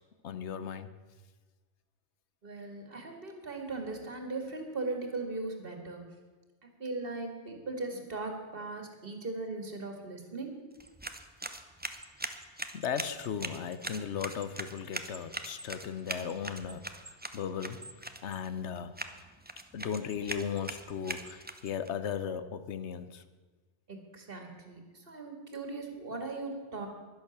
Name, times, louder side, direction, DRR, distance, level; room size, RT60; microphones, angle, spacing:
voice 1, 0.2-0.9 12.7-17.9 18.2-18.9 19.7-23.2, left 7 dB, 85° left, 12 dB, 1.1 m, -36 dB
voice 2, 2.4-6.0 6.8-10.6 23.9-26.9, right 3 dB, 55° right, 4 dB, 2.2 m, -38 dB
sound 1, 10.7-21.9, right 1 dB, 10° right, 0.6 m, -42 dB
11.0 x 11.0 x 7.2 m, 1.3 s
omnidirectional pair, 1.1 m